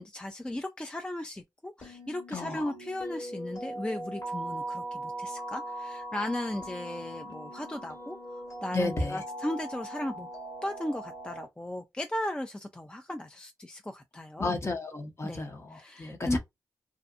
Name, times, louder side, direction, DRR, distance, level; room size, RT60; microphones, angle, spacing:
voice 1, 0.0-8.2 8.6-10.3 10.6-14.6 15.2-15.5 15.7-16.4, left 1 dB, 15° left, 0.4 m, -36 dB
sound 1, 1.8-11.5, right 1 dB, 55° left, 1.6 m, -40 dB
voice 2, 2.3-2.7 8.7-9.2 14.4-16.4, left 2 dB, 40° left, 0.9 m, -33 dB
2.5 x 2.4 x 2.4 m
supercardioid pair, 45°, 7 cm